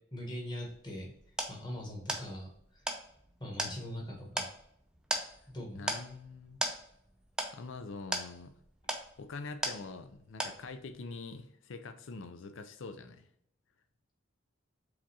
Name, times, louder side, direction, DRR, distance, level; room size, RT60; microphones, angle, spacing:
voice 1, 0.1-1.1 1.5-2.9 3.4-4.5 5.5-5.9, left 1 dB, 20° left, -1 dB, 1.3 m, -42 dB
sound 1, 0.7-10.1 10.4-11.0, right 1 dB, 5° right, 0.4 m, -38 dB
voice 2, 5.7-6.6 7.5-8.5 9.2-13.3, left 3 dB, 70° left, 9 dB, 0.5 m, -44 dB
5.0 x 3.5 x 2.8 m, 0.69 s
head